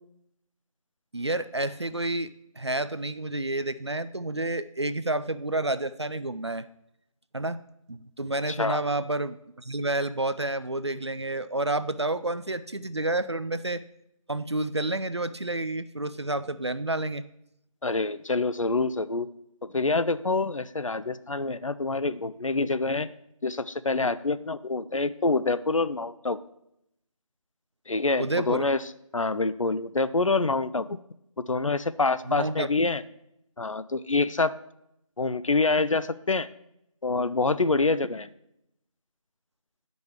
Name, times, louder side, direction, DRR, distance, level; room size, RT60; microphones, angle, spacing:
voice 1, 1.1-6.7 7.3-7.6 7.9-13.8 14.3-17.2 28.2-28.6 32.2-32.7, right 2 dB, 50° right, 13 dB, 0.4 m, -29 dB
voice 2, 17.8-19.3 19.6-23.1 23.4-26.4 27.9-28.8 29.1-31.0 31.5-33.0 33.6-34.5 35.2-36.5 37.0-38.3, left 3 dB, 65° left, 14 dB, 0.5 m, -26 dB
9.6 x 5.4 x 4.6 m, 0.79 s
figure-of-eight pair, 175°, 18 cm